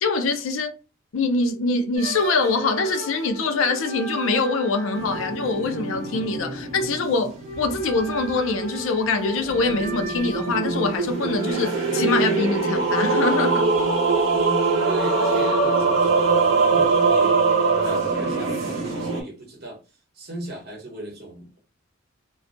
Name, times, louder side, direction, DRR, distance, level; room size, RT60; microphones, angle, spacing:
voice 1, 0.0-0.7 1.1-13.7, left 3 dB, 80° left, 0.4 m, -24 dB
sound 1, 1.9-11.5, right 1 dB, 30° right, 0.6 m, -36 dB
sound 2, 4.9-8.3 9.4-19.2, right 4 dB, 80° right, 0.7 m, -23 dB
voice 2, 14.8-17.4 17.8-19.8 20.2-21.5, right 1 dB, 50° right, 1.0 m, -36 dB
2.3 x 2.1 x 2.5 m
head